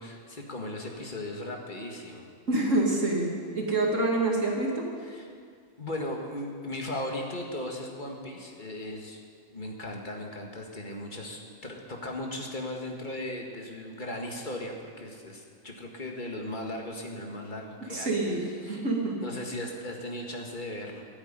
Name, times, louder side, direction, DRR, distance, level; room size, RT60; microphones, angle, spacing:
voice 1, 0.0-2.3 5.0-5.3 5.8-9.2 9.5-18.2 18.6-18.9 19.2-21.1, left 1 dB, 35° left, 1 dB, 1.9 m, -37 dB
voice 2, 2.5-4.9 17.9-19.2, right 2 dB, 60° right, -1 dB, 2.5 m, -27 dB
13.0 x 9.0 x 10.0 m, 2.1 s
omnidirectional pair, 1.5 m